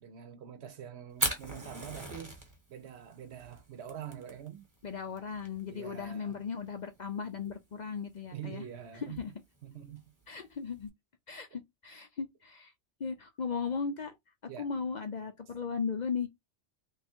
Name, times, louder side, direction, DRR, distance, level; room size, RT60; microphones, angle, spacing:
voice 1, 0.0-2.4 2.7-4.7 5.7-6.4 8.3-9.3 9.6-10.1 14.5-14.7, right 9 dB, 70° right, 1.0 m, -45 dB
Fire, 1.1-10.9, right 1 dB, 20° right, 1.1 m, -41 dB
voice 2, 4.8-8.6 9.2-9.3 10.3-10.9 11.3-12.7 13.0-14.2 14.4-16.3, left 5 dB, 50° left, 0.6 m, -36 dB
3.6 x 2.3 x 4.3 m
omnidirectional pair, 1.2 m